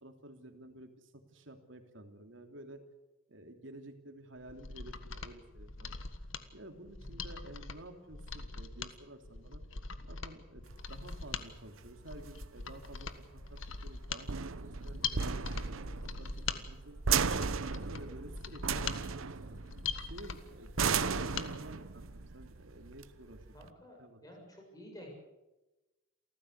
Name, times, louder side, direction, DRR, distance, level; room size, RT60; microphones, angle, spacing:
voice 1, 0.0-2.8 3.3-5.9 6.5-9.6 10.0-10.6 10.9-15.2 15.6-17.0 17.4-19.6 20.1-23.7 24.0-24.3, right 1 dB, 70° right, 5 dB, 3.1 m, -51 dB
Mechanisms, 4.4-21.5 21.8-21.9, left 5 dB, 75° left, 1.6 m, -42 dB
sound 1, 10.7-23.7, right 6 dB, 90° right, 0.9 m, -36 dB
voice 2, 23.5-25.1, equal, 20° left, 1 dB, 7.1 m, -51 dB
28.0 x 14.5 x 8.2 m, 1.1 s
head